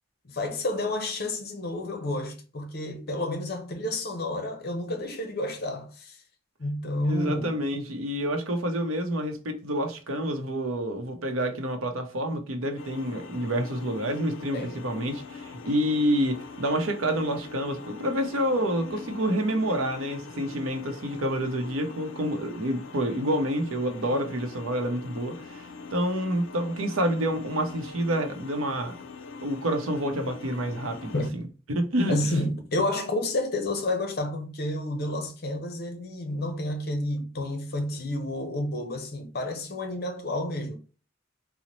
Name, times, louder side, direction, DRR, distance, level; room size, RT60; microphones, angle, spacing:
voice 1, 0.2-6.2 6.6-7.6 14.5-14.8 31.1-31.4 32.1-40.8, left 1 dB, 50° left, 0.7 m, -30 dB
voice 2, 7.1-25.6 25.9-28.9 29.4-31.2 31.7-32.3, equal, 90° right, 0.7 m, -28 dB
sound 1, 12.8-31.3, left 4 dB, 70° left, 0.4 m, -43 dB
3.9 x 2.1 x 3.0 m
head